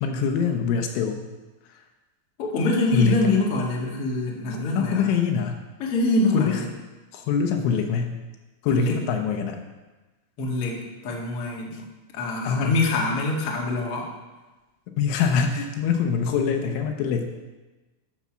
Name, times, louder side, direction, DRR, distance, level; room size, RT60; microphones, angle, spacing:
voice 1, 0.0-1.2 1.6-1.9 2.9-3.2 4.5-5.6 6.3-6.6 7.1-8.2 8.6-9.6 11.7-11.9 12.4-12.8 15.0-17.3, left 6 dB, 75° left, 4 dB, 3.2 m, -24 dB
voice 2, 2.4-5.1 5.8-6.6 8.7-9.0 10.4-11.9 12.1-14.1, left 2 dB, 60° left, -2 dB, 1.5 m, -25 dB
12.5 x 7.0 x 6.2 m, 1.2 s
omnidirectional pair, 5.9 m